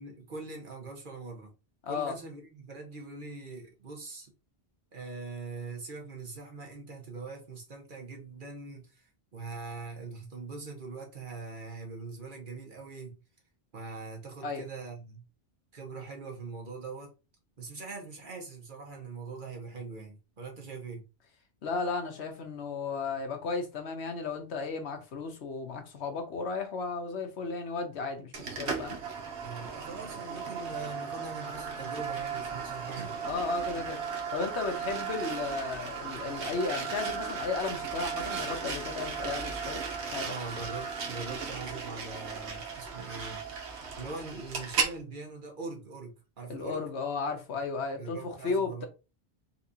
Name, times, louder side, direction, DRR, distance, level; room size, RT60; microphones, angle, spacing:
voice 1, 0.0-1.5 1.9-4.3 4.9-13.2 13.7-15.2 15.7-17.1 17.6-21.0 29.4-33.2 40.2-43.4 44.0-46.8 47.9-48.9, right 4 dB, 50° right, 1.2 m, -42 dB
voice 2, 1.8-2.2 14.4-14.6 21.6-29.0 33.2-34.0 34.3-40.3 46.5-48.9, left 4 dB, 80° left, 1.1 m, -34 dB
sound 1, 28.3-45.0, right 6 dB, 85° right, 1.1 m, -36 dB
4.1 x 2.5 x 2.7 m
omnidirectional pair, 1.1 m